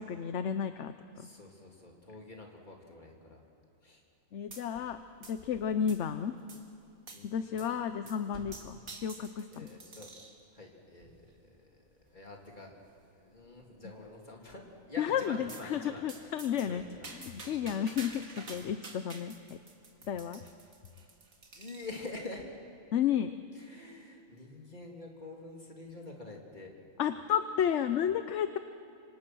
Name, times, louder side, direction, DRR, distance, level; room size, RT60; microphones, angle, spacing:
voice 1, 0.0-1.3 4.3-6.3 7.2-9.7 15.0-16.8 17.1-19.3 20.1-20.4 22.9-23.4 27.0-28.6, left 8 dB, 65° left, 10 dB, 1.0 m, -32 dB
voice 2, 1.2-3.4 3.8-4.0 7.1-7.7 9.5-10.1 10.5-12.7 13.1-16.3 16.6-17.1 17.6-18.0 21.5-22.5 23.5-26.7, left 2 dB, 35° left, 0 dB, 3.3 m, -47 dB
sound 1, 4.5-5.0 5.2-6.1 6.5-6.6 7.1-7.3 7.6-7.8 8.1-10.4 11.0-11.4 12.0-12.1 12.4-12.5 12.8-12.9 13.4-13.8 15.5-15.7 16.1-22.1, right 3 dB, 85° right, 2.5 m, -49 dB
26.5 x 25.0 x 6.2 m, 2.7 s
omnidirectional pair, 1.4 m